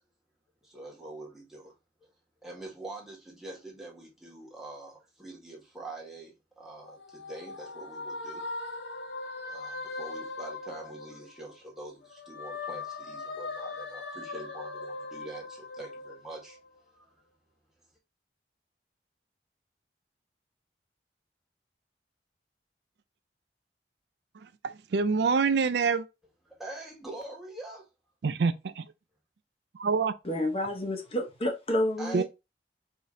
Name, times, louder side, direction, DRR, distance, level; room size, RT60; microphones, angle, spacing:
voice 1, 0.6-1.7 2.4-8.5 9.5-16.6 16.9-17.1 26.5-27.9 32.0-32.2, right 2 dB, ahead, 1.6 m, -44 dB
sound 1, 6.7-11.6 12.0-16.8, left 3 dB, 80° left, 0.7 m, -40 dB
voice 2, 24.6-26.1 28.2-28.8 29.8-30.1 32.1-32.2, right 5 dB, 75° right, 0.4 m, -26 dB
voice 3, 30.2-32.2, left 1 dB, 35° left, 0.9 m, -29 dB
5.1 x 2.7 x 3.8 m
head